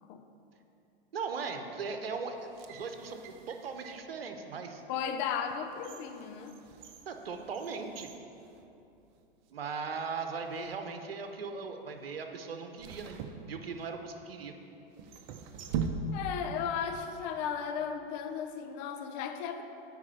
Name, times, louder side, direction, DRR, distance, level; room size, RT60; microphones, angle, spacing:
voice 1, 1.1-4.8 7.1-8.1 9.5-13.2 13.5-14.5, right 5 dB, 80° right, 6 dB, 0.9 m, -38 dB
sound 1, 2.4-4.1 4.7-4.9 5.4-9.2 9.5-9.6 10.4-10.8 12.8-14.1 14.9-16.5 16.8-16.9, right 5 dB, 50° right, 0.8 m, -41 dB
voice 2, 4.9-6.6 16.1-19.6, left 7 dB, 50° left, 7 dB, 0.8 m, -35 dB
9.7 x 4.5 x 6.9 m, 2.8 s
hypercardioid pair, 95°, 29 cm